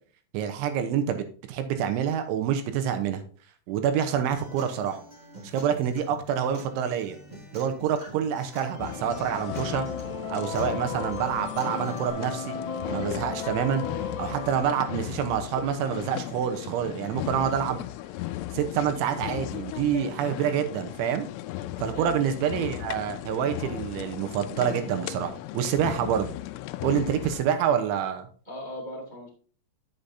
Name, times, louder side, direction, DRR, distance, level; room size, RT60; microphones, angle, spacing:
voice 1, 0.3-3.2 3.7-5.0 5.4-7.2 7.5-9.9 10.3-12.6 12.9-13.8 14.2-17.8 18.5-21.3 21.8-26.3 26.8-28.3, right 8 dB, 75° right, 7 dB, 3.1 m, -27 dB
Acoustic guitar, 4.1-12.1, equal, 35° right, 0.6 m, -47 dB
sound 1, 8.5-15.5, left 5 dB, 55° left, 1.9 m, -36 dB
sound 2, 8.8-27.5, left 15 dB, 85° left, 3.0 m, -36 dB
voice 2, 21.9-22.3 28.4-29.3, equal, 20° right, -4 dB, 1.1 m, -39 dB
10.0 x 7.7 x 2.7 m, 0.42 s
omnidirectional pair, 5.9 m